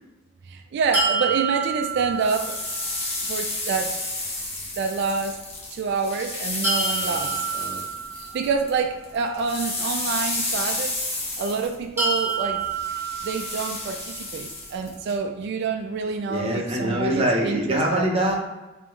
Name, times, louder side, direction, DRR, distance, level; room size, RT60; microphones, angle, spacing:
voice 1, 0.5-2.6 3.3-3.9 4.8-5.4 5.7-7.3 8.3-11.0 11.4-12.6 13.2-18.1, right 5 dB, 60° right, 4 dB, 0.3 m, -27 dB
sound 1, 0.9-2.9 6.6-8.7 12.0-14.0, right 4 dB, 10° right, 1.3 m, -28 dB
sound 2, 2.0-8.8 9.0-15.1, left 2 dB, 30° left, 1.0 m, -31 dB
voice 2, 7.0-7.9 16.3-18.4, right 1 dB, 30° right, -1 dB, 0.8 m, -25 dB
3.5 x 3.4 x 3.1 m, 1.1 s
head